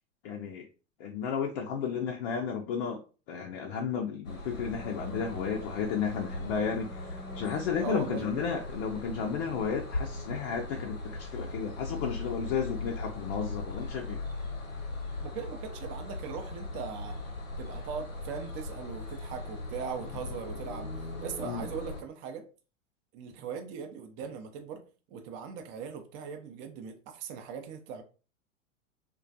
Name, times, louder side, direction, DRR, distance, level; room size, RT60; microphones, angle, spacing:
voice 1, 0.2-0.7 1.0-3.0 3.3-14.2 21.4-21.6, left 6 dB, 45° left, 0.5 m, -33 dB
sound 1, 4.2-22.0, left 2 dB, 85° left, 0.9 m, -39 dB
voice 2, 7.8-8.4 15.2-17.2 17.6-20.9 21.2-22.5 23.1-24.8 25.1-28.0, right 6 dB, 30° right, 0.5 m, -39 dB
2.3 x 2.2 x 2.6 m
figure-of-eight pair, 95°, 39 cm